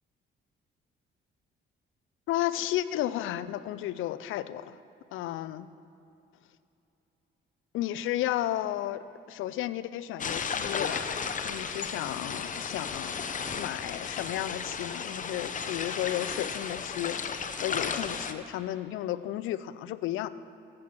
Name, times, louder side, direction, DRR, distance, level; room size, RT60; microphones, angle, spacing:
voice 1, 2.3-4.8 5.1-5.7 7.7-11.2 11.4-13.2 13.5-17.2 17.6-20.3, left 13 dB, 85° left, 15 dB, 0.5 m, -33 dB
sound 1, 10.2-18.3, left 6 dB, 40° left, 0.7 m, -34 dB
14.5 x 7.7 x 5.9 m, 2.8 s
cardioid pair, 90°, 20 cm